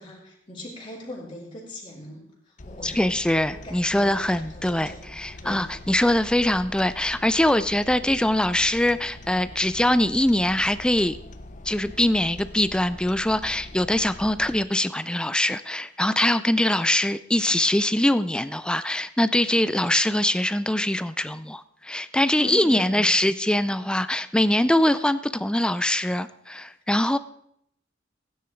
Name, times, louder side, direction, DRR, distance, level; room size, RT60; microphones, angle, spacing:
voice 1, 0.0-2.2 2.6-3.2 3.5-4.4 4.7-5.0 5.4-5.7 22.4-23.1, left 1 dB, 30° left, -5 dB, 3.4 m, -39 dB
sound 1, 2.6-14.6, left 1 dB, 45° left, 0.9 m, -43 dB
voice 2, 2.8-11.2 11.7-27.2, left 1 dB, 5° left, 14 dB, 0.4 m, -23 dB
16.5 x 9.5 x 4.5 m, 0.72 s
head